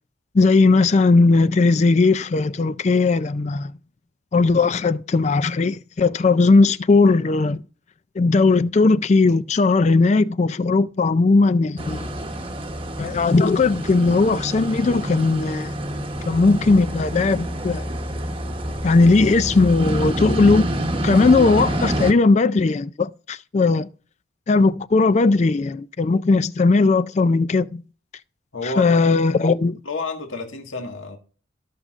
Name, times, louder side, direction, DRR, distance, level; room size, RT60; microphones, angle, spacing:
voice 1, 0.3-3.7 4.3-7.6 8.2-12.1 13.0-15.7 16.3-17.9 18.8-20.7 21.0-23.9 24.5-27.8 28.6-29.8, left 3 dB, 35° left, 0.3 m, -18 dB
sound 1, 11.8-22.1, right 1 dB, 25° right, 1.0 m, -27 dB
voice 2, 28.5-29.0 29.8-31.2, left 2 dB, 75° left, 1.7 m, -30 dB
17.5 x 6.3 x 2.5 m
head